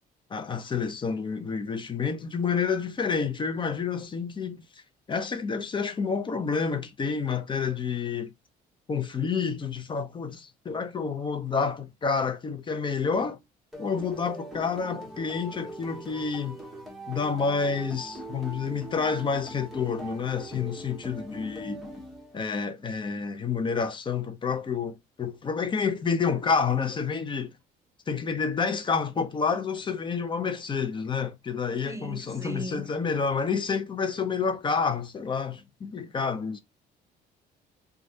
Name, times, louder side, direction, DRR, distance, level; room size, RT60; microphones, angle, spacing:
voice 1, 0.3-4.6 5.1-8.3 8.9-13.4 13.8-16.6 17.1-21.8 22.3-27.5 28.1-36.6, left 5 dB, 30° left, 0.6 m, -29 dB
sound 1, 13.7-22.6, right 1 dB, ahead, 1.4 m, -41 dB
voice 2, 31.8-32.8, right 1 dB, 15° right, 0.5 m, -37 dB
3.1 x 2.4 x 2.7 m
cardioid pair, 110°, 17 cm